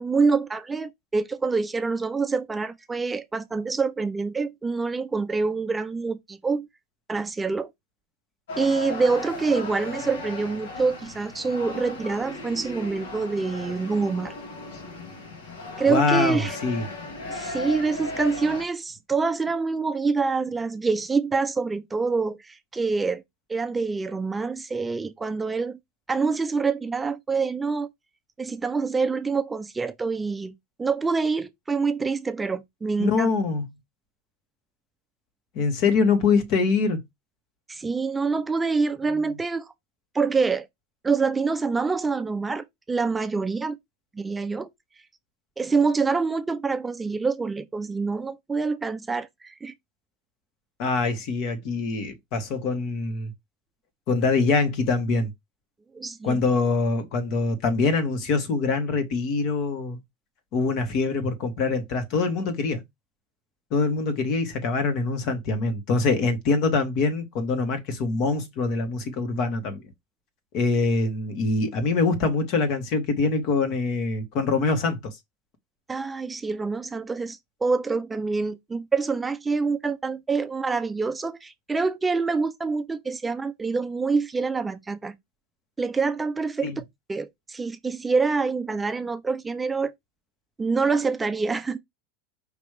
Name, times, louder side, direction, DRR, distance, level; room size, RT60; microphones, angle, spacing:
voice 1, 0.0-6.7 7.1-7.7 8.6-14.3 15.8-16.6 17.3-23.2 23.5-25.8 26.1-27.9 28.4-30.5 30.8-33.3 37.7-39.7 40.1-40.7 41.0-43.8 44.2-44.7 45.6-49.7 55.9-56.4 75.9-85.2 85.8-86.8 87.1-89.9 90.6-91.8, right 4 dB, 15° right, 0.5 m, -26 dB
sound 1, 8.5-18.7, left 2 dB, 80° left, 1.7 m, -36 dB
voice 2, 15.8-16.8 33.0-33.7 35.5-37.0 50.8-53.3 54.1-55.3 56.2-60.0 60.5-62.8 63.7-69.8 70.5-75.2 86.6-86.8, left 4 dB, 55° left, 1.6 m, -24 dB
5.1 x 3.0 x 3.3 m
supercardioid pair, 110°, 0 cm